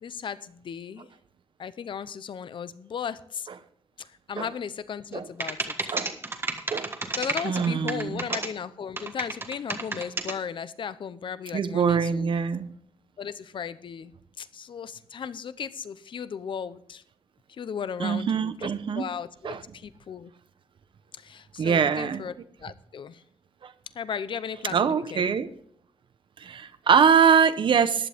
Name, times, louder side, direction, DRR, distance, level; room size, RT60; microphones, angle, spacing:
voice 1, 0.0-1.1 1.6-3.5 4.0-5.8 7.1-12.3 13.2-14.1 14.4-17.0 17.6-20.3 21.2-22.3 22.6-23.2 23.9-25.3, left 7 dB, 55° left, 15 dB, 0.8 m, -36 dB
sound 1, 5.1-5.2 5.4-8.5 9.0-10.3, right 3 dB, 25° right, 1.5 m, -30 dB
voice 2, 7.4-8.4 11.5-12.7 18.0-19.1 19.4-19.6 21.6-22.2 23.6-23.7 24.7-25.5 26.4-28.1, right 6 dB, 55° right, 12 dB, 0.9 m, -23 dB
15.0 x 11.0 x 3.5 m, 0.65 s
wide cardioid pair, 165°, 10 cm